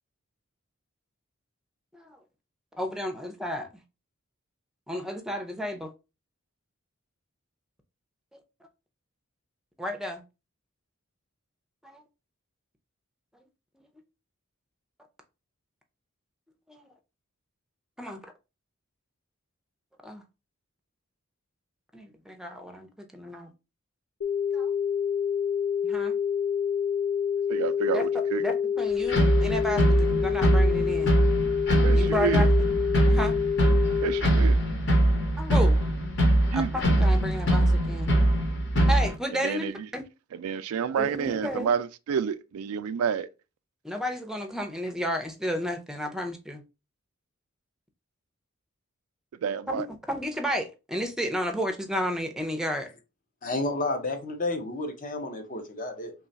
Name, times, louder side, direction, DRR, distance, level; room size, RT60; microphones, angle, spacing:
voice 1, 2.7-3.7 4.9-5.9 8.3-8.4 9.8-10.2 11.8-12.0 16.7-16.9 18.0-18.3 20.0-20.2 21.9-22.9 23.1-23.5 24.5-24.7 25.8-26.2 27.9-31.1 31.9-32.5 33.1-33.4 35.4-35.8 36.5-38.1 38.9-40.0 41.0-41.7 43.8-46.6 49.7-49.8 50.1-52.9, equal, 5° right, 0.5 m, -32 dB
sound 1, 24.2-34.2, left 7 dB, 75° left, 0.5 m, -27 dB
voice 2, 27.5-28.5 31.8-32.5 34.0-34.6 36.5-36.7 39.4-39.9 40.3-43.3 49.4-49.9, right 7 dB, 90° right, 0.3 m, -29 dB
sound 2, 29.1-39.1, right 1 dB, 55° left, 1.0 m, -22 dB
voice 3, 53.4-56.1, left 2 dB, 40° left, 0.7 m, -31 dB
3.2 x 2.3 x 3.9 m
head